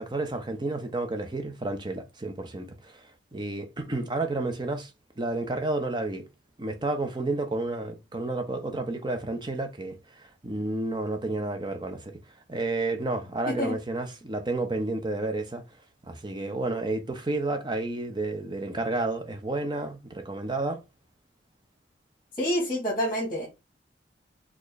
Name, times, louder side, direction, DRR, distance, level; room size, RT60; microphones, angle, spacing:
voice 1, 0.0-4.9 5.2-6.3 6.6-12.2 12.5-15.6 16.0-20.8, right 2 dB, 25° right, 0.6 m, -31 dB
voice 2, 13.5-13.8 22.4-23.5, equal, 25° left, 1.2 m, -27 dB
4.3 x 2.4 x 3.1 m
head